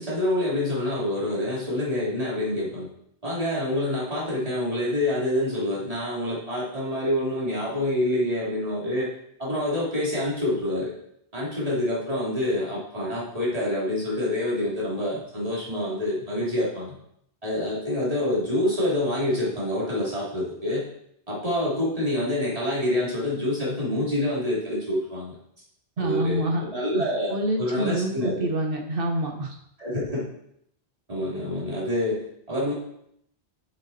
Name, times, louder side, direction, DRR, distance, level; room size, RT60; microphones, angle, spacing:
voice 1, 0.0-2.9 3.2-9.1 9.4-10.9 11.3-17.0 17.4-20.9 21.3-25.4 26.0-28.5 29.8-30.3 31.1-32.7, left 1 dB, 35° right, -7 dB, 3.3 m, -27 dB
voice 2, 26.0-26.6 26.9-29.5, right 1 dB, 55° right, 2 dB, 1.4 m, -27 dB
8.0 x 6.8 x 4.3 m, 0.72 s
omnidirectional pair, 1.1 m